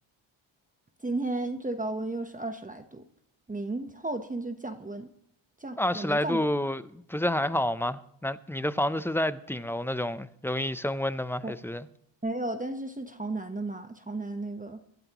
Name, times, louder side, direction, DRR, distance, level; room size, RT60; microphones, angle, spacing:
voice 1, 1.0-3.0 3.5-5.1 5.6-6.4 11.4-11.5 12.2-14.8, right 2 dB, 15° right, 1.0 m, -34 dB
voice 2, 5.8-11.9, left 1 dB, 5° left, 0.6 m, -29 dB
25.0 x 12.5 x 3.0 m
cardioid pair, 95°, 47 cm